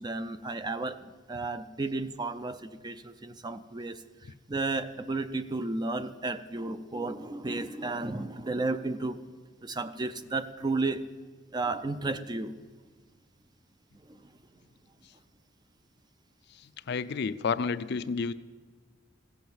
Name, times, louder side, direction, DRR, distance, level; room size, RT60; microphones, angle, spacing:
voice 1, 0.0-4.0 4.5-11.0 11.5-12.5 14.1-14.3, right 3 dB, 20° right, 11 dB, 0.4 m, -33 dB
voice 2, 16.9-18.3, left 5 dB, 55° left, 13 dB, 0.4 m, -30 dB
16.0 x 7.8 x 7.2 m, 1.4 s
head